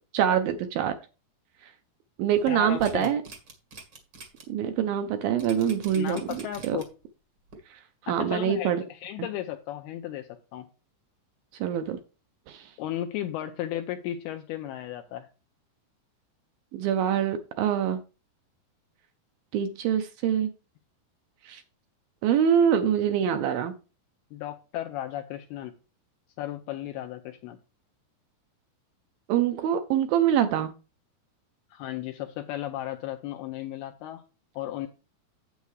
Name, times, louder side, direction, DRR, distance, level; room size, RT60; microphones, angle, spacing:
voice 1, 0.1-1.0 1.6-1.7 2.2-3.2 4.5-6.8 7.7-8.8 11.6-12.0 12.5-12.7 16.7-18.0 19.5-20.5 21.4-21.6 22.2-23.7 29.3-30.7, right 9 dB, 80° right, 8 dB, 2.1 m, -25 dB
sound 1, 2.4-4.4 4.8-4.9 5.4-7.0 7.5-7.6, right 3 dB, 55° right, 1.2 m, -45 dB
voice 2, 2.5-3.1 5.9-6.9 8.1-10.7 12.8-15.3 24.3-25.7 26.4-27.6 31.7-34.2 34.6-34.9, left 12 dB, 85° left, 6 dB, 2.3 m, -35 dB
9.1 x 8.2 x 3.2 m, 0.33 s
omnidirectional pair, 4.9 m